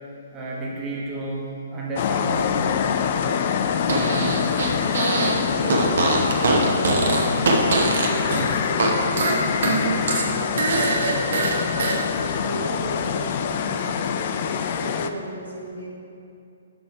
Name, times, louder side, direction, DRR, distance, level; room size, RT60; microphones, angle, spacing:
voice 1, 0.3-2.4, right 2 dB, 20° right, -4 dB, 1.2 m, -31 dB
sound 1, 2.0-15.1, left 7 dB, 40° left, 0.3 m, -25 dB
Fart, 3.8-5.4 5.7-8.9 9.2-12.0, right 2 dB, 50° right, 0.9 m, -22 dB
voice 2, 4.9-9.5 9.8-11.6 12.2-15.9, right 1 dB, 85° right, -5 dB, 1.8 m, -35 dB
6.7 x 6.0 x 4.5 m, 2.5 s
figure-of-eight pair, 125°, 0 cm